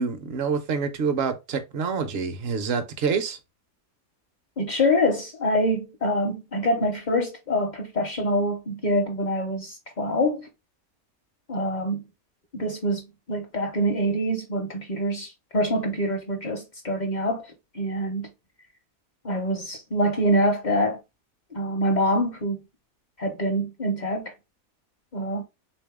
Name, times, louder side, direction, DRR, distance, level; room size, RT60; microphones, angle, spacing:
voice 1, 0.0-3.4, right 5 dB, 60° right, 0.7 m, -27 dB
voice 2, 4.6-10.5 11.5-12.0 12.5-17.4 17.7-18.3 19.2-21.0 21.5-22.6 23.2-24.3 25.1-25.4, equal, 45° left, 0.6 m, -25 dB
3.5 x 2.6 x 3.5 m
omnidirectional pair, 1.5 m